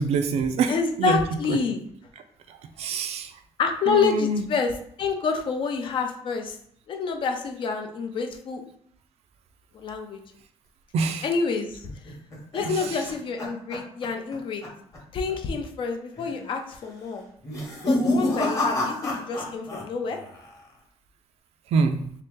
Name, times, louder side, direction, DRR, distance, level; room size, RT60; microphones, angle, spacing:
voice 1, 0.0-1.6 2.5-3.3 3.8-4.4 10.9-11.4 12.6-13.1 21.7-22.0, right 4 dB, 60° right, 7 dB, 0.4 m, -26 dB
voice 2, 0.7-1.8 3.6-4.7 5.0-6.6 6.9-8.6 9.7-10.2 11.2-11.9 12.5-14.6 15.1-17.3 17.9-20.2, left 5 dB, 45° left, 5 dB, 0.5 m, -27 dB
sound 1, 11.8-14.4 14.6-15.0 15.3-15.4 16.1-16.5 17.4-19.8 20.1-20.7, left 1 dB, 25° left, 1.0 m, -28 dB
3.4 x 2.8 x 3.6 m, 0.64 s
cardioid pair, 160°, 12 cm